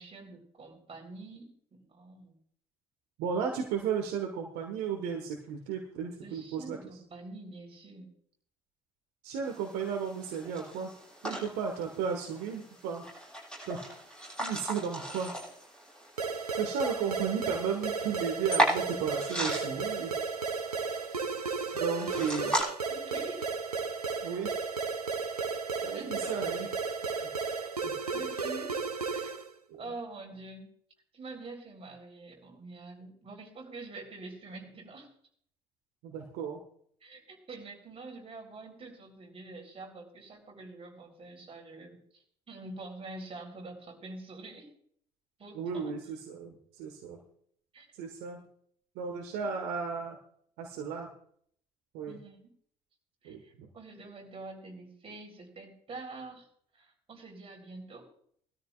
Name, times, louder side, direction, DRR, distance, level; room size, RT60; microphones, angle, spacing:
voice 1, 0.0-2.4 6.2-8.1 11.3-11.4 22.9-23.5 25.9-26.4 28.1-28.8 29.1-29.4 29.8-30.7 31.1-35.1 37.0-44.7 45.4-45.9 47.7-47.9 52.1-52.5 53.2-56.5 56.7-58.1, right 3 dB, 30° right, 1 dB, 3.9 m, -46 dB
voice 2, 3.2-6.8 9.2-10.9 11.2-13.0 13.7-13.9 14.4-15.3 16.6-20.1 21.7-22.6 24.2-24.6 25.8-26.7 27.8-27.9 29.7-29.8 36.0-36.6 45.5-47.2 48.0-48.4 48.9-50.2 50.6-51.1 51.9-52.2 53.2-53.7, right 6 dB, 60° right, 3 dB, 1.5 m, -34 dB
sound 1, 9.4-22.6, equal, 5° left, 7.2 m, -37 dB
sound 2, 16.2-29.5, right 4 dB, 90° right, 0.5 m, -34 dB
19.5 x 13.0 x 2.4 m, 0.62 s
figure-of-eight pair, 55°, 19 cm